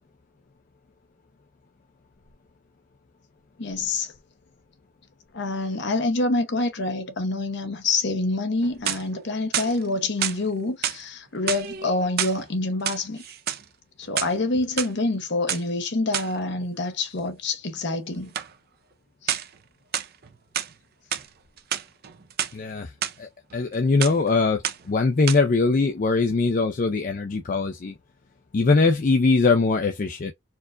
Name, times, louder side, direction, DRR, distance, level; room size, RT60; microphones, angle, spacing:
voice 1, 3.6-4.1 5.3-13.2 14.0-18.3 19.2-19.4, left 2 dB, 55° left, 0.8 m, -26 dB
sound 1, 8.6-9.2 9.5-10.4 10.8-11.0 11.4-12.4 12.7-13.6 14.0-14.9 15.5-15.6 16.1-16.4 18.3-18.5 19.3-19.6 19.9-20.7 21.1-21.3 21.6-22.5 23.0-23.1 23.5-23.8 24.0-24.3 24.6-25.0 25.3-25.4, right 10 dB, 50° right, 0.5 m, -29 dB
voice 2, 22.5-22.9 23.2-27.9 28.5-30.3, left 3 dB, 40° left, 0.4 m, -22 dB
4.5 x 2.4 x 2.2 m
head